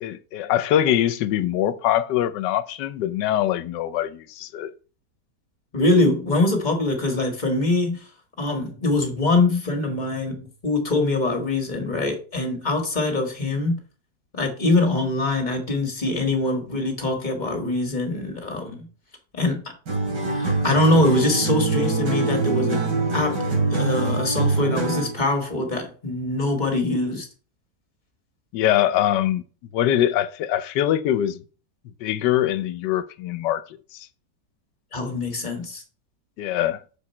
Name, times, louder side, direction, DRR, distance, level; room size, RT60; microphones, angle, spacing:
voice 1, 0.0-4.7 28.5-29.4 29.7-31.4 32.0-33.6 33.9-34.1 36.4-36.8, left 11 dB, 80° left, 1.3 m, -23 dB
voice 2, 5.7-8.1 8.4-13.8 14.3-18.9 19.3-19.7 20.3-22.9 23.1-23.4 23.7-27.3 34.9-35.8, left 2 dB, 25° left, 1.7 m, -23 dB
sound 1, 19.9-25.2, right 3 dB, 85° right, 3.4 m, -24 dB
7.1 x 4.9 x 4.3 m
omnidirectional pair, 1.9 m